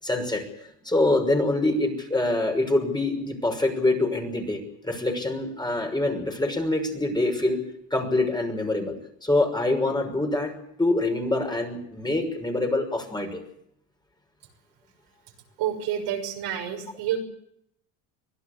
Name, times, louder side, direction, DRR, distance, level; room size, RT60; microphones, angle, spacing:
voice 1, 0.0-7.6 7.9-9.0 9.2-10.5 10.8-13.4, left 2 dB, 10° left, 4 dB, 6.0 m, -25 dB
voice 2, 15.6-17.2, right 10 dB, 60° right, 4 dB, 6.3 m, -29 dB
25.5 x 16.0 x 8.2 m, 0.73 s
supercardioid pair, 95°, 47 cm